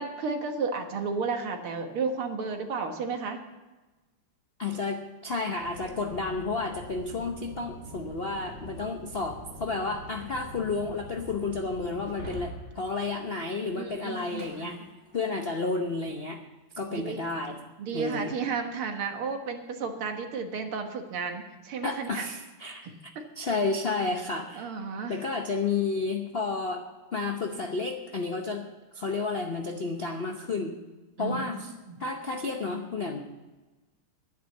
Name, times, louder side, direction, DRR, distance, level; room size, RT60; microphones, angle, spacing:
voice 1, 0.0-3.4 13.8-14.8 16.9-17.2 17.8-22.3 22.8-23.5 24.5-25.2 31.2-32.0, right 4 dB, 80° right, 5 dB, 2.2 m, -33 dB
voice 2, 4.6-14.8 15.1-16.4 16.8-17.6 17.9-18.3 21.8-24.7 25.1-26.8 27.1-28.7 28.9-30.8 31.2-31.7 32.0-33.2, left 3 dB, 55° left, 3 dB, 0.6 m, -31 dB
sound 1, 5.6-12.1, left 1 dB, 10° left, 3.8 m, -45 dB
Shatter, 12.0-15.5, right 1 dB, 30° right, 3.9 m, -45 dB
11.5 x 10.0 x 7.2 m, 1.2 s
omnidirectional pair, 2.4 m